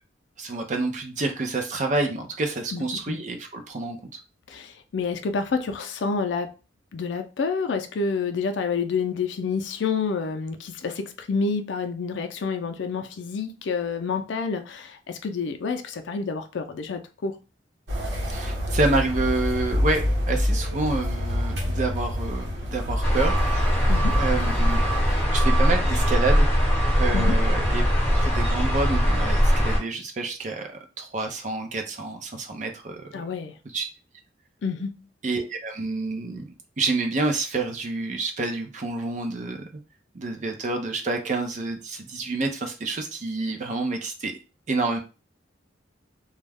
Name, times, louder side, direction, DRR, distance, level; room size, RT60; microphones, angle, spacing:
voice 1, 0.4-4.0 18.3-23.4 24.1-24.8 25.3-26.5 27.0-27.8 28.1-30.7 31.0-33.1 33.7-33.9 35.2-39.7 40.1-44.3 44.7-45.0, right 3 dB, 40° right, 0.5 m, -28 dB
voice 2, 2.7-3.2 4.5-6.5 6.9-17.3 23.9-24.1 27.1-27.3 33.1-33.5 34.6-34.9, left 5 dB, 80° left, 0.4 m, -28 dB
sound 1, 17.9-25.2, left 1 dB, 75° right, 0.9 m, -28 dB
sound 2, 23.0-29.8, equal, 10° left, 0.9 m, -21 dB
2.3 x 2.1 x 3.3 m
head